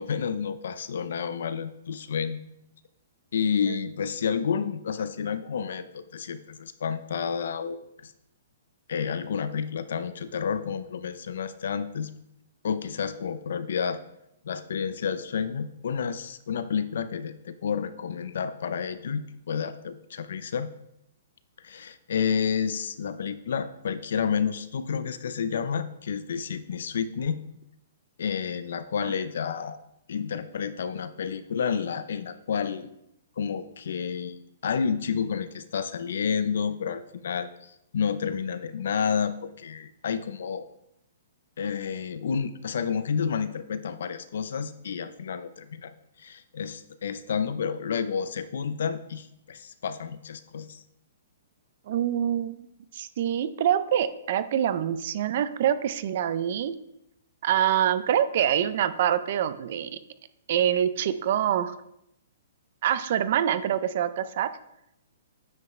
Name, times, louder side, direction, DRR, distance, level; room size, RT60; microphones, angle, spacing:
voice 1, 0.0-2.4 3.3-8.1 8.9-12.1 12.6-14.0 14.4-20.7 21.6-27.4 28.2-29.8 30.1-32.9 33.4-40.6 41.6-50.8, left 6 dB, 60° left, 13 dB, 0.5 m, -30 dB
voice 2, 51.9-52.7 52.9-56.7 57.4-60.0 60.5-61.7 62.8-64.5, right 10 dB, 40° right, 13 dB, 0.4 m, -25 dB
9.4 x 5.5 x 3.2 m, 0.80 s
hypercardioid pair, 175°, 0 cm